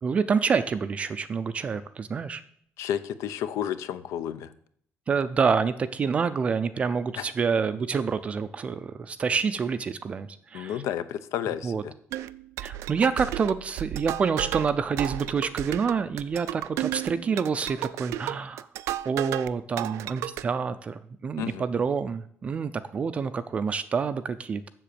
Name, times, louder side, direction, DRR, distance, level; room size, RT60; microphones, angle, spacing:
voice 1, 0.0-2.4 5.1-10.8 11.6-11.8 12.6-18.7 19.1-24.7, right 5 dB, 25° right, 11 dB, 0.4 m, -27 dB
voice 2, 2.8-4.5 7.2-7.3 10.5-11.9 21.4-21.6, left 10 dB, 80° left, 13 dB, 0.7 m, -31 dB
sound 1, 12.1-19.5 19.8-20.4, right 14 dB, 90° right, 0.4 m, -33 dB
7.6 x 7.1 x 6.7 m, 0.64 s
cardioid pair, 180°, 5 cm